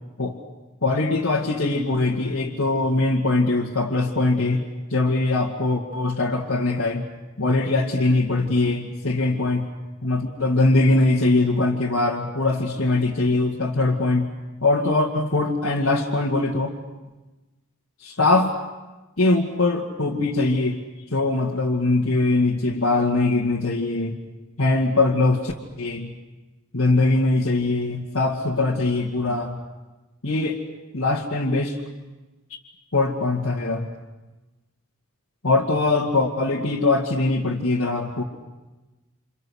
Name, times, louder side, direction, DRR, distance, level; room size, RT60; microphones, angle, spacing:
voice 1, 0.8-4.6 4.9-7.1 7.4-9.7 10.0-14.3 14.6-16.7 18.0-18.5 19.2-20.8 21.1-24.2 24.6-26.1 26.7-29.6 30.2-30.6 30.9-31.8 32.9-33.9 35.4-38.2, left 2 dB, 70° left, -5 dB, 2.3 m, -22 dB
29.5 x 27.5 x 6.5 m, 1.1 s
head